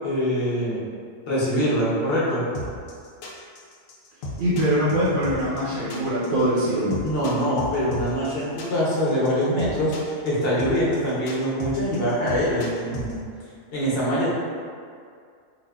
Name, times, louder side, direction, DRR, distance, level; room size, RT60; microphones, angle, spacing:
voice 1, 0.0-0.8 1.3-2.4 7.0-9.9 10.2-13.2 13.7-14.3, equal, 50° left, -7 dB, 0.9 m, -24 dB
sound 1, 2.5-13.1, left 1 dB, 80° left, 1.0 m, -34 dB
voice 2, 4.4-7.0, equal, 80° right, -8 dB, 1.0 m, -23 dB
2.5 x 2.4 x 3.4 m, 2.2 s
omnidirectional pair, 1.4 m